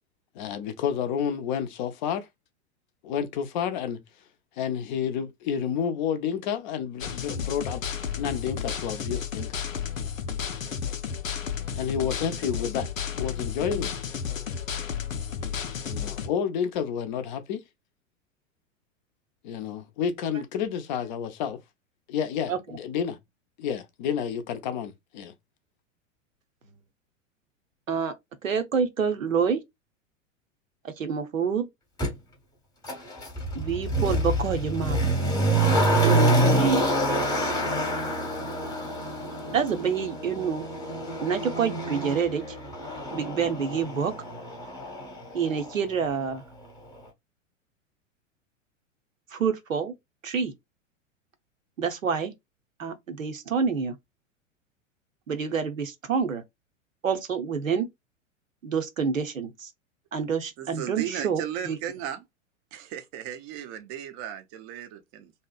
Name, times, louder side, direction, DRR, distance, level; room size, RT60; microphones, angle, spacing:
voice 1, 0.4-2.3 3.0-4.0 4.6-9.6 11.7-12.9 13.2-13.9 15.8-17.6 19.4-21.6 22.1-23.2 23.6-25.3, left 8 dB, 40° left, 0.4 m, -30 dB
sound 1, 7.0-16.3, left 7 dB, 90° left, 0.5 m, -32 dB
voice 2, 28.4-29.6 30.8-31.7 33.5-35.0 36.0-36.8 39.5-40.6 41.2-42.6 43.1-44.1 45.3-46.4 49.3-49.9 50.2-50.5 51.8-52.3 52.8-53.9 55.3-56.4 57.0-57.9 58.6-59.7 60.1-61.8, right 6 dB, 85° right, 0.7 m, -27 dB
Motor vehicle (road), 32.0-32.1 32.8-45.8 46.1-46.2, right 1 dB, 10° left, 0.8 m, -27 dB
voice 3, 60.6-62.2 62.7-65.3, right 10 dB, 25° right, 0.3 m, -36 dB
2.6 x 2.0 x 2.3 m
figure-of-eight pair, 95°, 39 cm